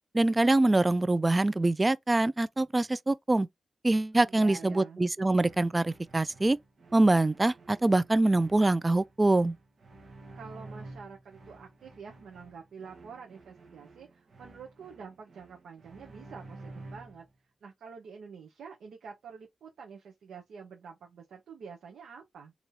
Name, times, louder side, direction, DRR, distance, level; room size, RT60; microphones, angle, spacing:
voice 1, 0.1-3.5 3.8-6.6 6.9-9.5, right 2 dB, 25° right, 0.3 m, -24 dB
voice 2, 4.1-5.0 10.3-17.3 17.6-22.5, right 6 dB, 85° right, 0.9 m, -47 dB
sound 1, 5.3-17.3, right 2 dB, 60° right, 1.1 m, -51 dB
3.9 x 2.9 x 2.7 m
cardioid pair, 70°, 0 cm